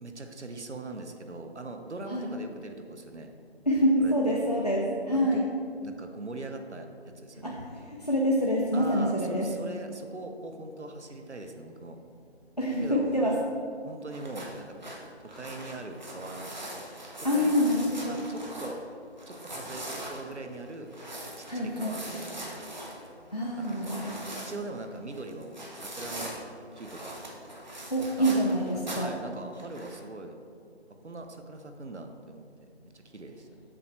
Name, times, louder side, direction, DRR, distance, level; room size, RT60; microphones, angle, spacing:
voice 1, 0.0-3.3 4.0-4.4 5.1-5.4 5.8-7.6 8.7-12.0 12.8-13.3 13.8-14.8 15.3-16.5 17.3-17.6 18.1-18.8 19.3-20.9 21.3-22.6 23.6-24.1 24.4-26.3 26.7-27.2 28.2-28.4 28.8-30.3 31.0-32.5 32.9-33.6, right 2 dB, 90° right, 5 dB, 0.7 m, -41 dB
voice 2, 3.7-5.4 7.4-9.5 12.6-13.4 17.2-18.2 21.5-22.0 23.3-24.1 27.9-29.1, equal, 35° left, -3 dB, 0.5 m, -26 dB
sound 1, 14.1-18.8 19.2-26.4 26.8-29.2 29.6-30.0, right 1 dB, 40° right, 0.9 m, -41 dB
7.6 x 5.5 x 3.2 m, 2.3 s
figure-of-eight pair, 160°, 33 cm